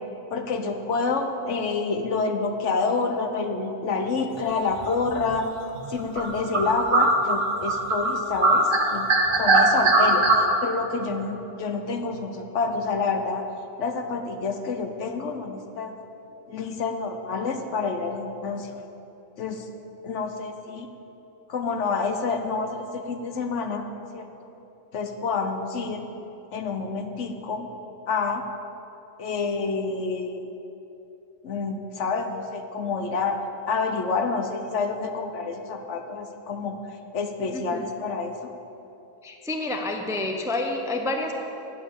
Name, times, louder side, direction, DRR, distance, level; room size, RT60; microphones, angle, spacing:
voice 1, 0.3-5.5 5.9-9.1 9.4-10.3 10.6-13.4 13.8-15.9 16.5-18.7 19.4-19.7 20.0-20.9 21.5-23.8 24.1-24.5 24.9-26.1 26.5-27.7 28.1-28.4 29.2-30.5 31.4-33.4 33.7-36.8 37.1-38.5, left 4 dB, 65° left, 5 dB, 1.1 m, -28 dB
sound 1, 4.9-5.2 5.7-5.8 6.2-8.1 8.4-10.4, right 3 dB, 70° right, 1.7 m, -20 dB
voice 2, 37.5-37.8 39.2-41.3, left 2 dB, 5° right, 3 dB, 0.5 m, -29 dB
9.5 x 8.6 x 6.8 m, 3.0 s
omnidirectional pair, 1.4 m